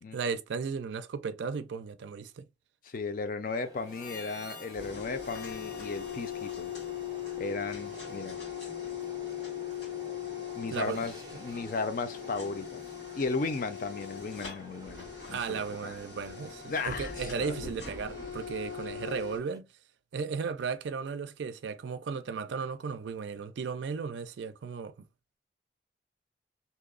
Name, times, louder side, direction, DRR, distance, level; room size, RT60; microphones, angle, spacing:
voice 1, 0.1-2.5 10.7-11.0 15.3-19.7 20.1-24.9, right 5 dB, 80° right, 0.4 m, -35 dB
voice 2, 2.8-6.7 7.4-8.4 10.6-12.8 13.1-15.9 16.7-17.6, left 4 dB, 50° left, 0.4 m, -35 dB
sound 1, 3.6-19.6, right 1 dB, 20° right, 0.4 m, -50 dB
Harmonica, 3.8-8.4, left 3 dB, 70° left, 0.8 m, -50 dB
sound 2, 4.7-19.4, left 9 dB, 90° left, 1.5 m, -40 dB
2.7 x 2.0 x 2.4 m
head